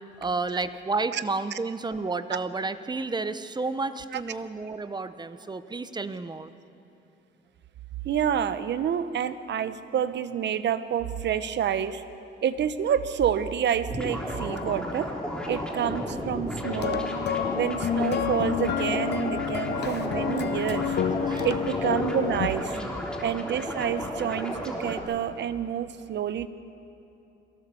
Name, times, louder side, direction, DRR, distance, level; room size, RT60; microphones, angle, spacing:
voice 1, 0.2-6.5 21.0-21.5 22.7-22.9, right 3 dB, 20° right, 12 dB, 0.9 m, -31 dB
voice 2, 8.0-12.0 12.4-15.1 15.5-17.1 17.5-21.0 21.4-22.8 23.2-26.5, right 9 dB, 60° right, 13 dB, 0.9 m, -28 dB
sound 1, 13.9-25.0, equal, 5° left, 3.4 m, -33 dB
sound 2, 16.6-22.5, left 8 dB, 60° left, 0.9 m, -29 dB
22.5 x 16.5 x 7.0 m, 2.9 s
cardioid pair, 90°, 20 cm